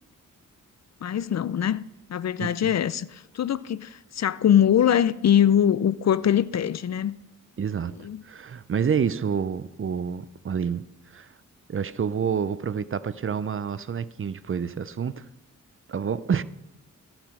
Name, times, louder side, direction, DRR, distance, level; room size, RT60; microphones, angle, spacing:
voice 1, 1.0-1.8 2.1-7.1 7.9-8.2, left 9 dB, 55° left, 0.5 m, -22 dB
voice 2, 7.6-8.0 8.2-10.8 11.1-11.3 11.7-15.2 15.9-16.4, right 7 dB, 40° right, 0.5 m, -28 dB
14.5 x 6.0 x 6.4 m
cardioid pair, 90°, 32 cm